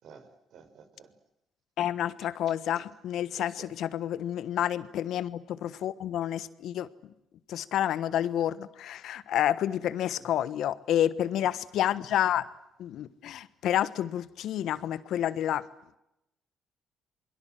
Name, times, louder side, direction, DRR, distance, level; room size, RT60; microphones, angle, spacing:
voice 1, 0.0-1.1 3.3-3.7 9.8-9.9 11.3-11.5, right 6 dB, 65° right, 8 dB, 4.6 m, -52 dB
voice 2, 1.8-6.9 7.5-12.5 12.8-15.6, left 11 dB, 70° left, 16 dB, 1.2 m, -29 dB
28.5 x 22.5 x 7.6 m, 0.86 s
hypercardioid pair, 55°, 0 cm